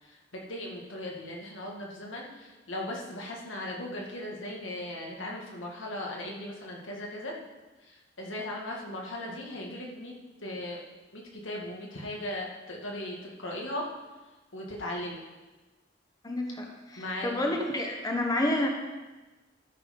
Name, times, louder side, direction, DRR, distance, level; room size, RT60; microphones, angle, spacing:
voice 1, 0.0-7.3 7.8-10.1 10.4-10.8 11.1-13.8 14.5-15.2 17.0-17.5, left 1 dB, 90° left, -2 dB, 2.0 m, -38 dB
voice 2, 16.2-18.7, left 1 dB, 20° left, 1 dB, 1.0 m, -29 dB
12.5 x 5.5 x 5.4 m, 1.2 s
head